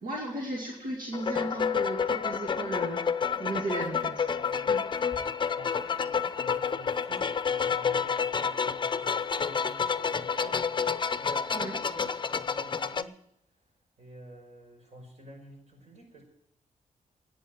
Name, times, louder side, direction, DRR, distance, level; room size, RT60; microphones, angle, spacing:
voice 1, 0.0-4.2 4.7-4.8 11.5-11.7, right 2 dB, 85° right, -1 dB, 2.4 m, -35 dB
sound 1, 1.1-13.0, left 6 dB, 35° left, 0.6 m, -29 dB
voice 2, 4.3-4.7 5.1-5.2 5.5-10.6 11.2-13.2 14.0-16.2, right 1 dB, 55° right, 2 dB, 5.6 m, -49 dB
10.5 x 8.3 x 9.3 m, 0.78 s
cardioid pair, 65°, 14 cm